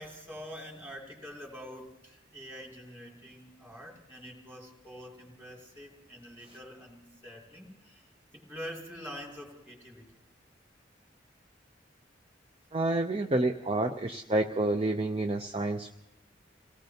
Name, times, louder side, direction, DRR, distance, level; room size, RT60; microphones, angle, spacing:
voice 1, 0.0-10.1, equal, 10° right, 0 dB, 2.7 m, -46 dB
voice 2, 12.7-15.9, right 2 dB, 30° right, 5 dB, 0.6 m, -29 dB
28.0 x 18.0 x 2.9 m, 0.95 s
head